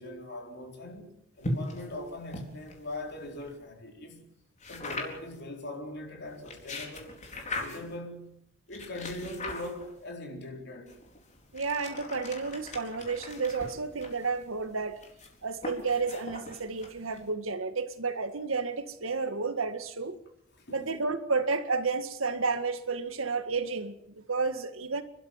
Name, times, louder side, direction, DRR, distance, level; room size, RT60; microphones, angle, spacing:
voice 1, 0.0-4.3 4.7-7.3 7.6-8.4 8.7-11.0 20.6-20.8, left 1 dB, 55° left, 4.3 m, -41 dB
sound 1, 1.4-3.6 4.6-5.4 6.3-8.0 8.7-10.1 10.9-17.3, left 2 dB, 35° left, 4.4 m, -40 dB
voice 2, 11.5-15.0 15.4-20.2 20.7-25.0, right 4 dB, 75° right, 1.9 m, -31 dB
29.5 x 13.0 x 7.6 m
head